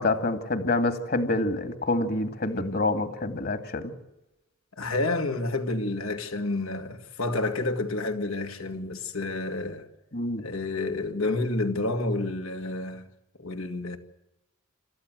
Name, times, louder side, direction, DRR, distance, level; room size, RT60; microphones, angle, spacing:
voice 1, 0.0-3.9 10.1-10.4, left 2 dB, 45° left, 2.3 m, -27 dB
voice 2, 4.7-9.9 10.4-13.1 13.4-14.0, left 2 dB, 80° left, 2.4 m, -29 dB
28.0 x 14.0 x 8.1 m
head